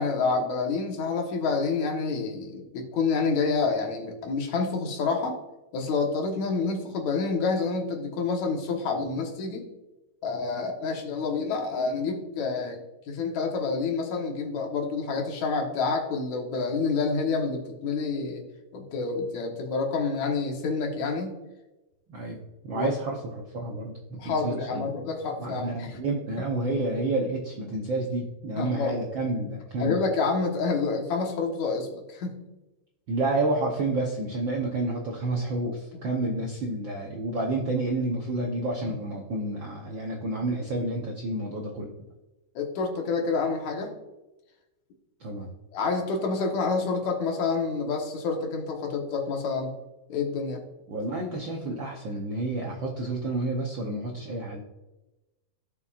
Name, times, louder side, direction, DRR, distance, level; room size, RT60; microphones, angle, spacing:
voice 1, 0.0-5.4 5.7-9.6 10.2-18.4 18.7-21.4 22.7-22.9 24.2-26.0 26.4-26.5 28.6-28.9 29.8-32.4 42.6-43.9 45.7-49.7 50.1-50.6, left 4 dB, 75° left, 2 dB, 2.6 m, -28 dB
voice 2, 22.1-24.8 25.4-30.0 33.1-42.1 45.2-45.5 50.9-54.6, right 2 dB, 65° right, -1 dB, 1.2 m, -30 dB
16.0 x 5.5 x 2.4 m, 1.0 s
omnidirectional pair, 3.4 m